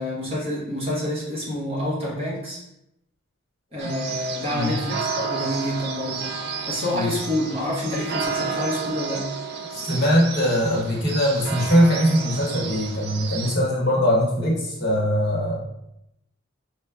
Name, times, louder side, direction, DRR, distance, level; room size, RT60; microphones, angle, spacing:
voice 1, 0.0-2.6 3.7-9.3, left 1 dB, 30° right, -6 dB, 0.9 m, -28 dB
sound 1, 3.8-13.6, right 5 dB, 50° right, 0.3 m, -31 dB
voice 2, 9.7-15.6, equal, 55° left, -4 dB, 1.1 m, -21 dB
4.3 x 2.2 x 2.3 m, 0.85 s
head